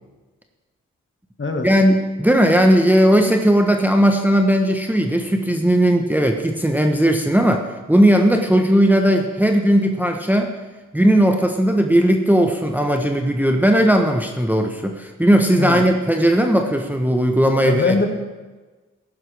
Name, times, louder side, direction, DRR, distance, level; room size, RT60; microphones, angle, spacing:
voice 1, 1.6-10.5 10.9-18.0, equal, 5° right, 4 dB, 1.1 m, -17 dB
voice 2, 17.6-18.1, left 3 dB, 40° left, 4 dB, 1.9 m, -21 dB
14.5 x 11.0 x 3.5 m, 1.2 s
cardioid pair, 50°, 31 cm